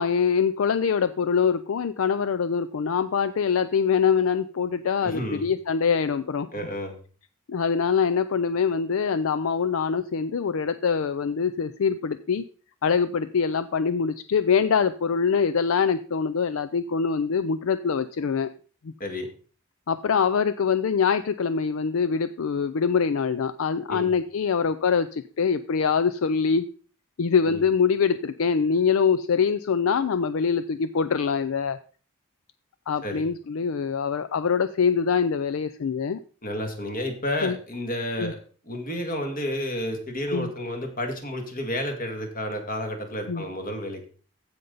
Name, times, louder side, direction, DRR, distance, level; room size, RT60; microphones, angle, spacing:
voice 1, 0.0-6.5 7.5-12.4 12.8-18.5 19.9-26.7 27.2-31.8 32.9-36.2 37.4-37.6 38.2-38.3 40.3-40.5 43.3-43.4, left 6 dB, 70° left, 12 dB, 0.4 m, -24 dB
voice 2, 5.0-5.4 6.5-7.0 19.0-19.3 23.9-24.1 27.5-27.6 33.0-33.3 36.4-38.4 38.7-44.1, left 1 dB, 40° left, 4 dB, 2.1 m, -31 dB
15.5 x 5.3 x 3.9 m, 0.39 s
head